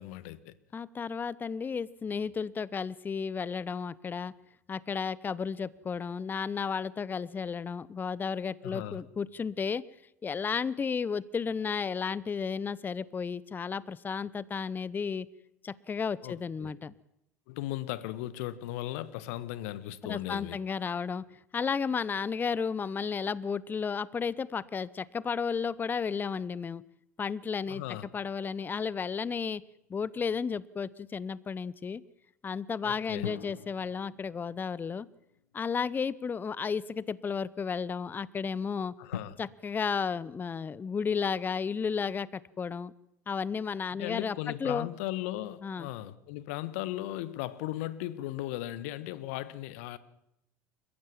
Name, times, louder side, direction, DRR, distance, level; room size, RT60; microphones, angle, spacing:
voice 1, 0.0-0.5 8.6-9.0 16.2-16.7 17.5-20.6 27.7-28.1 32.8-33.3 39.0-39.4 43.9-50.0, left 15 dB, 60° left, 1.4 m, -37 dB
voice 2, 0.7-4.3 4.7-9.9 10.2-15.3 15.6-16.9 20.0-21.3 21.5-26.8 27.2-27.8 28.1-29.6 29.9-32.0 32.4-35.1 35.5-38.9 39.4-42.9 43.3-44.9 45.6-45.9, left 6 dB, 20° left, 0.8 m, -33 dB
sound 1, 27.8-30.3 33.2-36.6 37.3-37.4 39.1-39.2, left 9 dB, 75° left, 1.1 m, -45 dB
29.0 x 15.5 x 7.3 m
figure-of-eight pair, 70°, 9 cm